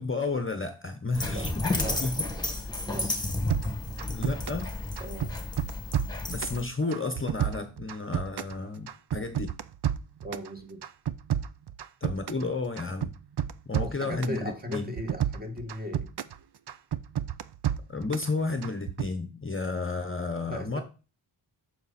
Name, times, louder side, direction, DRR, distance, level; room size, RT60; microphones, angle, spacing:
voice 1, 0.0-2.1 4.1-4.7 6.3-9.5 12.0-13.1 13.7-14.9 17.9-20.8, left 3 dB, 25° left, 7 dB, 0.9 m, -32 dB
Dog, 1.1-6.6, left 2 dB, 10° left, 1.7 m, -32 dB
voice 2, 1.3-2.0 2.9-3.1 5.0-5.3 10.2-10.8 13.8-16.1 20.5-20.8, equal, 20° right, 3 dB, 1.8 m, -38 dB
sound 1, 3.5-4.7 5.0-6.6 6.9-8.6 8.9-10.5 10.8-12.5 12.8-14.4 14.7-16.4 16.7-18.3 18.6-19.1, right 10 dB, 55° right, 0.6 m, -31 dB
9.2 x 6.6 x 4.2 m, 0.33 s
wide cardioid pair, 135°, 49 cm